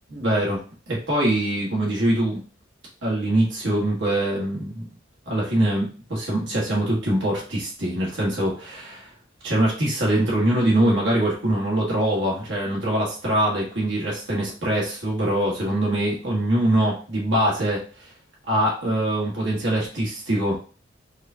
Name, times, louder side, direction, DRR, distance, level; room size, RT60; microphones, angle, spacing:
voice 1, 0.1-0.6 0.9-2.4 3.0-4.9 5.2-9.1 9.4-17.8 18.5-20.6, right 1 dB, 70° right, -4 dB, 1.5 m, -23 dB
4.8 x 2.5 x 2.7 m, 0.37 s
head